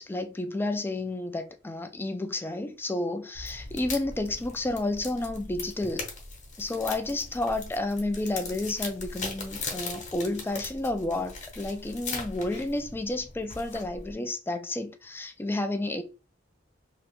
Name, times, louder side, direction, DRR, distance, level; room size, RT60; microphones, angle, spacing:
voice 1, 0.0-6.0 6.6-16.0, left 2 dB, 10° left, 0.3 m, -31 dB
sound 1, 3.3-14.1, left 3 dB, 40° left, 0.9 m, -39 dB
2.8 x 2.4 x 3.4 m
head